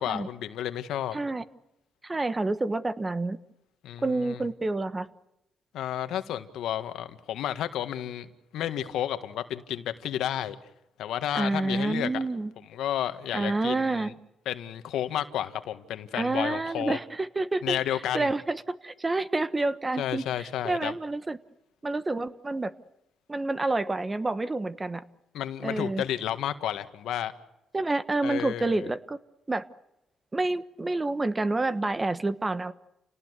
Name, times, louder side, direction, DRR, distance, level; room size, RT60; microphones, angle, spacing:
voice 1, 0.0-1.2 3.8-4.4 5.7-10.6 11.0-12.2 12.7-14.1 14.5-17.0 17.6-18.3 20.0-20.9 25.3-27.3 28.2-28.9, left 11 dB, 80° left, 10 dB, 1.7 m, -31 dB
voice 2, 1.1-1.4 2.0-3.4 4.0-5.1 11.3-12.5 13.3-14.1 16.1-21.4 21.8-22.7 23.3-25.0 25.6-26.0 27.7-29.2 29.5-29.6 30.3-32.7, right 2 dB, 20° right, 13 dB, 1.3 m, -28 dB
29.5 x 18.5 x 8.2 m, 0.87 s
cardioid pair, 90°, 0 cm